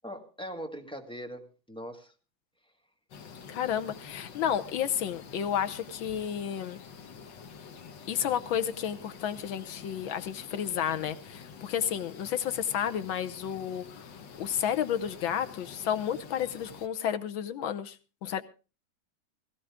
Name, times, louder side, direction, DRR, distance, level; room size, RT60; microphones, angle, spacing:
voice 1, 0.0-2.1, equal, 5° left, 3 dB, 1.9 m, -41 dB
sound 1, 3.1-16.9, left 6 dB, 65° left, 1.8 m, -48 dB
voice 2, 3.5-6.8 8.1-14.1 14.4-18.0 18.2-18.4, left 9 dB, 90° left, 9 dB, 1.8 m, -31 dB
17.0 x 16.0 x 3.6 m, 0.33 s
omnidirectional pair, 2.1 m